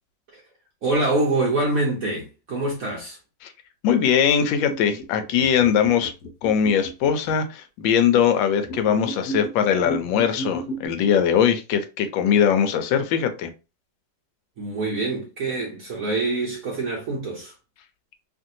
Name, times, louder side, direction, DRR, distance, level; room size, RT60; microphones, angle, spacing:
voice 1, 0.8-3.2 14.6-17.5, right 2 dB, 60° right, 1.0 m, -25 dB
voice 2, 3.8-6.1 6.4-13.5, left 8 dB, 85° left, 1.3 m, -21 dB
sound 1, 4.3-7.3 8.6-10.9, right 2 dB, 65° left, 1.1 m, -34 dB
3.1 x 2.5 x 2.7 m
omnidirectional pair, 2.0 m